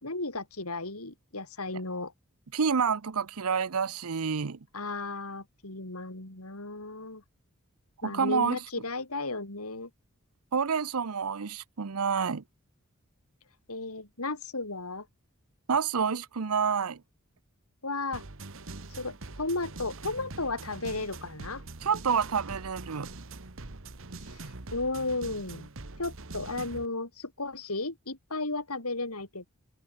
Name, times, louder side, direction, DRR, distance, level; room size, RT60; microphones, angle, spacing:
voice 1, 0.0-2.1 4.7-7.2 8.0-9.9 13.7-15.1 17.8-18.2 19.0-21.6 24.3-25.7 26.0-29.5, left 3 dB, 80° left, 4.9 m, -34 dB
voice 2, 2.5-4.6 8.0-8.6 10.5-12.4 15.7-17.0 21.8-23.1, right 6 dB, 80° right, 0.7 m, -28 dB
sound 1, 18.1-26.9, right 3 dB, 65° right, 1.6 m, -43 dB
head